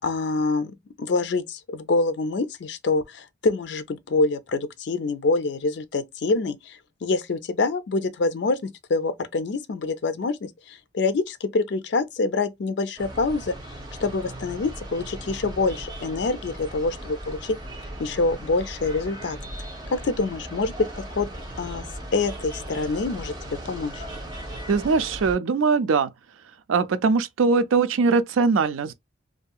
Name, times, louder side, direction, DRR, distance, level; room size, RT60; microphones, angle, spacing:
voice 1, 0.0-13.5 14.0-17.6 18.0-19.4 19.9-21.3 21.6-21.8 22.1-24.0, left 3 dB, 60° left, 0.4 m, -26 dB
sound 1, 13.0-25.4, right 1 dB, 20° right, 0.8 m, -38 dB
voice 2, 24.7-26.1 26.7-28.9, right 4 dB, 90° right, 0.4 m, -21 dB
2.7 x 2.6 x 2.3 m
head